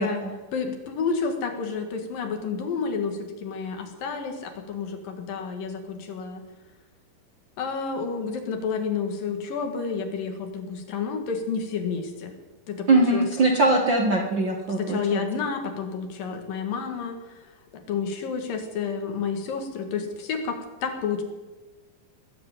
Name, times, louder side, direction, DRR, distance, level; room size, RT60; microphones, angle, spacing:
voice 1, 0.0-0.3 12.9-15.2, right 2 dB, 45° right, 1 dB, 1.5 m, -22 dB
voice 2, 0.5-6.4 7.6-12.3 12.7-13.3 14.8-17.2 17.9-21.2, left 5 dB, 70° left, 5 dB, 3.5 m, -30 dB
19.5 x 7.9 x 9.2 m, 1.2 s
omnidirectional pair, 4.2 m